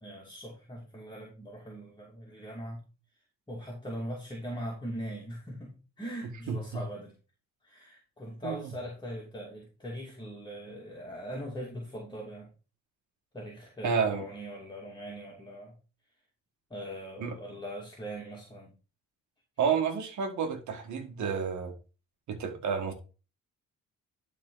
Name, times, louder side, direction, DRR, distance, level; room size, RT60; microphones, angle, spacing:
voice 1, 0.0-2.8 3.5-7.1 7.6-12.5 13.3-15.7 16.7-18.7, equal, 15° left, 2.6 m, -41 dB
voice 2, 13.8-14.2 17.2-17.4 19.6-21.7 22.3-22.9, right 6 dB, 70° right, 1.8 m, -30 dB
11.5 x 4.2 x 3.9 m
cardioid pair, 90°, 30 cm